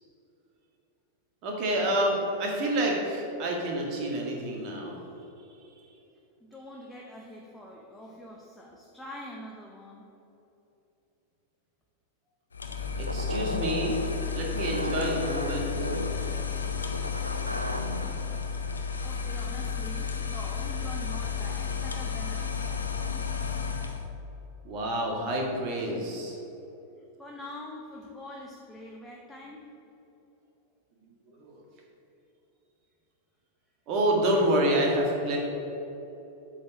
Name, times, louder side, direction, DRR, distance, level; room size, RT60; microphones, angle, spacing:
voice 1, 1.4-5.0 13.0-14.0 14.3-15.7 24.6-26.4 31.1-31.6 33.9-35.4, right 1 dB, 40° right, -1 dB, 1.9 m, -28 dB
voice 2, 6.4-10.0 19.0-23.1 27.2-29.7, left 1 dB, 5° left, -2 dB, 0.9 m, -44 dB
sound 1, 12.5-24.1, left 6 dB, 75° left, 0.7 m, -32 dB
sound 2, 13.1-18.2, equal, 85° right, 0.5 m, -35 dB
8.3 x 4.5 x 7.1 m, 3.0 s
figure-of-eight pair, 90°, 0 cm